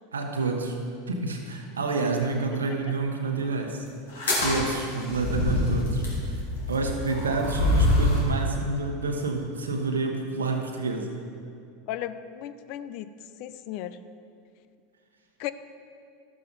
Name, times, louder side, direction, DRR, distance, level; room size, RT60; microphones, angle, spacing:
voice 1, 0.1-0.8 1.1-3.8 4.4-6.4 6.7-11.1, right 3 dB, 85° right, 3 dB, 1.1 m, -28 dB
sound 1, 4.1-8.3, left 2 dB, 80° left, 2.3 m, -25 dB
voice 2, 11.9-13.1 13.4-14.0 15.4-15.5, left 12 dB, 55° left, 12 dB, 0.5 m, -35 dB
12.5 x 7.4 x 4.0 m, 2.4 s
hypercardioid pair, 85°, 0 cm